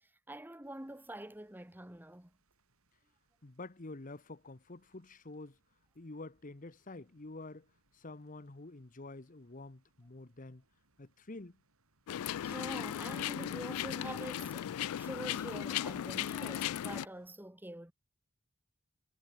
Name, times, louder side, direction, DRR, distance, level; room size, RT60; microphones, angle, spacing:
voice 1, 0.0-2.3 12.4-17.9, right 1 dB, 10° right, 1.3 m, -46 dB
sound 1, 0.6-17.3, right 3 dB, 75° right, 7.2 m, -77 dB
voice 2, 3.4-5.6 5.9-7.7 7.9-10.6 11.0-11.6, left 2 dB, 35° left, 1.0 m, -48 dB
sound 2, 12.1-17.0, left 10 dB, 85° left, 0.3 m, -37 dB
head